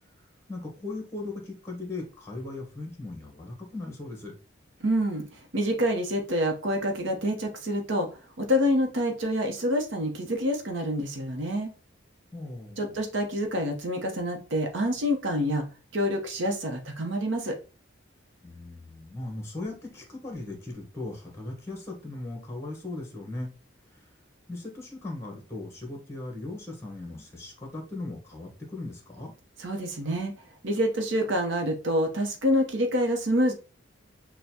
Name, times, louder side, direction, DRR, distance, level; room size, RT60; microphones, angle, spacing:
voice 1, 0.0-4.3 12.3-13.0 18.4-23.5 23.9-24.2 24.5-29.3, left 2 dB, 15° left, 2 dB, 1.0 m, -38 dB
voice 2, 4.8-5.2 5.5-8.1 8.4-11.7 12.8-15.6 15.9-17.6 29.6-30.3 30.6-33.5, equal, 70° right, 4 dB, 0.8 m, -27 dB
6.4 x 2.2 x 2.8 m, 0.33 s
head